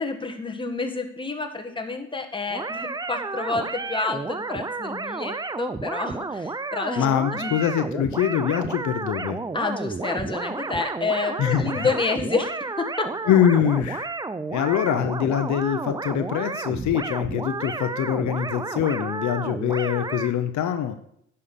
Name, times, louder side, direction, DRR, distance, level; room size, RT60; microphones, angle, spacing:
voice 1, 0.0-7.0 7.4-7.5 9.5-12.5 12.8-13.1, left 3 dB, 15° left, 4 dB, 1.5 m, -29 dB
sound 1, 2.5-20.3, right 3 dB, 15° right, 0.5 m, -31 dB
voice 2, 7.0-9.4 11.4-11.9 13.2-14.1 14.5-21.0, left 9 dB, 70° left, 9 dB, 0.8 m, -24 dB
9.9 x 5.7 x 6.7 m, 0.74 s
cardioid pair, 90°, 30 cm